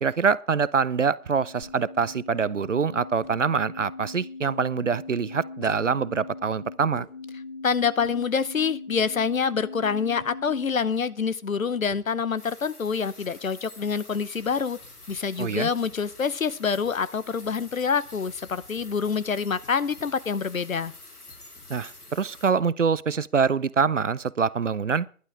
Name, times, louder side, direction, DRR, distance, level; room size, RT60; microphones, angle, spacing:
voice 1, 0.0-7.1 15.4-15.7 21.7-25.1, right 6 dB, 55° right, 0.5 m, -25 dB
sound 1, 1.2-10.8, left 3 dB, 30° left, 0.9 m, -41 dB
sound 2, 1.6-19.3, equal, 10° left, 1.9 m, -59 dB
voice 2, 7.6-14.8 15.1-20.9, left 6 dB, 60° left, 0.8 m, -26 dB
sound 3, 12.4-22.5, left 2 dB, 80° left, 3.3 m, -47 dB
12.0 x 11.5 x 4.8 m
figure-of-eight pair, 155°, 45 cm